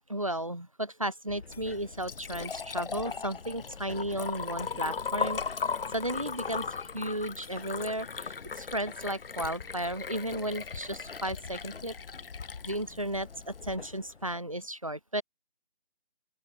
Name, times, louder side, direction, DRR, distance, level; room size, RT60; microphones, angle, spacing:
voice 1, 0.1-11.9 12.6-15.2, right 1 dB, 35° right, 0.4 m, -34 dB
sound 1, 1.3-14.4, left 4 dB, 80° left, 1.4 m, -50 dB
Liquid, 1.7-13.8, left 5 dB, 65° left, 0.7 m, -37 dB
open air
figure-of-eight pair, 170°, 31 cm